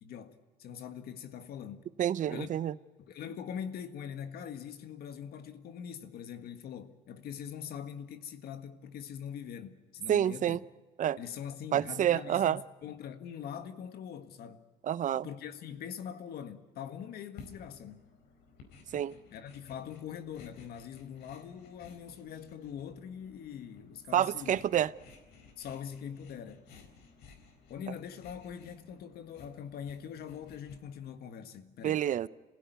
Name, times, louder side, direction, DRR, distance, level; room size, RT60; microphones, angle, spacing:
voice 1, 0.0-1.9 2.3-2.5 3.0-10.6 11.2-14.7 15.2-18.0 19.3-24.6 25.6-26.6 27.7-32.0, left 8 dB, 70° left, 1.7 m, -43 dB
voice 2, 2.0-2.7 10.1-10.6 11.0-11.2 11.7-12.6 14.8-15.3 18.9-19.2 24.1-24.9 31.8-32.3, right 10 dB, 50° right, 0.7 m, -28 dB
sound 1, 17.4-31.2, left 5 dB, 85° left, 4.4 m, -56 dB
27.0 x 16.5 x 9.4 m
cardioid pair, 110°, 17 cm